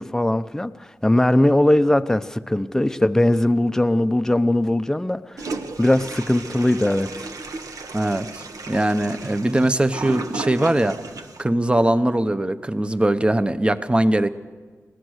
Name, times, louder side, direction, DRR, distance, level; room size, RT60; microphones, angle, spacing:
voice 1, 0.0-5.5 5.8-7.3, left 1 dB, 10° left, 9 dB, 0.7 m, -20 dB
Toilet flush, 5.4-11.4, right 3 dB, 80° right, 1.4 m, -34 dB
voice 2, 7.9-11.0 11.4-14.3, right 1 dB, 20° right, 11 dB, 0.9 m, -21 dB
23.5 x 17.5 x 6.5 m, 1.5 s
wide cardioid pair, 100°, 6 cm